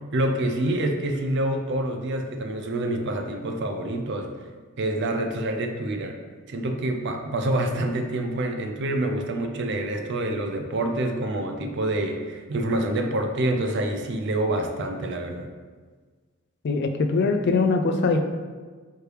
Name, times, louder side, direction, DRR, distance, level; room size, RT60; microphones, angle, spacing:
voice 1, 0.1-4.3 4.8-6.2 6.5-15.5, right 1 dB, 55° right, 4 dB, 0.4 m, -27 dB
voice 2, 16.6-18.2, left 3 dB, 50° left, 6 dB, 0.3 m, -22 dB
4.8 x 3.2 x 3.1 m, 1.5 s
head